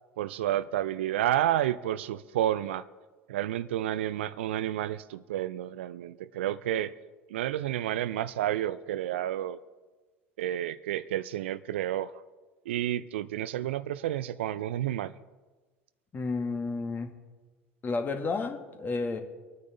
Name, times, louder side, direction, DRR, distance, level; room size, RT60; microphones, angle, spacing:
voice 1, 0.2-2.9 3.3-6.9 7.3-9.6 10.4-12.1 12.7-15.1, right 12 dB, 70° right, 0.4 m, -30 dB
voice 2, 16.1-17.1 17.8-19.2, left 3 dB, 30° left, 1.8 m, -31 dB
25.0 x 9.6 x 3.9 m
figure-of-eight pair, 70°, 7 cm